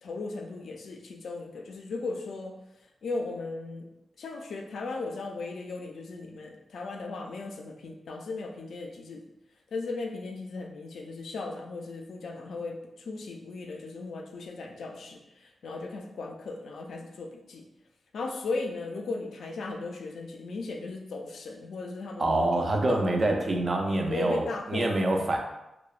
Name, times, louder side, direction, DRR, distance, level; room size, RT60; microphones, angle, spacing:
voice 1, 0.0-2.6 3.0-3.9 4.2-9.2 9.7-12.8 13.1-17.6 18.1-23.0 23.8-25.3, left 3 dB, 80° left, 2 dB, 0.3 m, -37 dB
voice 2, 22.2-25.4, right 2 dB, 35° right, 2 dB, 0.3 m, -26 dB
2.8 x 2.0 x 2.3 m, 0.91 s
wide cardioid pair, 165°, 0 cm